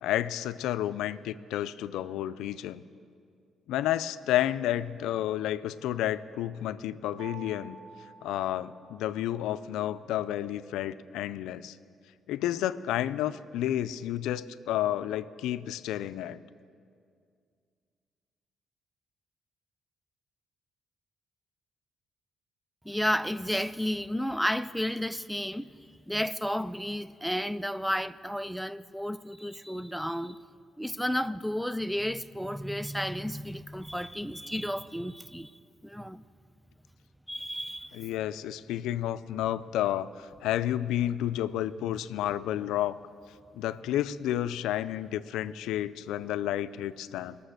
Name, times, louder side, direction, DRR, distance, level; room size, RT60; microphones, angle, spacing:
voice 1, 0.0-2.8 3.7-7.8 8.2-11.8 12.3-16.4 37.9-43.0 43.6-47.4, left 12 dB, 90° left, 14 dB, 0.4 m, -31 dB
sound 1, 7.2-9.3, right 7 dB, 90° right, 4.4 m, -49 dB
voice 2, 22.8-25.7 26.1-30.4 30.8-35.5 35.8-36.2 37.3-38.0, equal, ahead, 16 dB, 0.4 m, -32 dB
19.5 x 6.8 x 6.5 m, 2.2 s
cardioid pair, 90°, 0 cm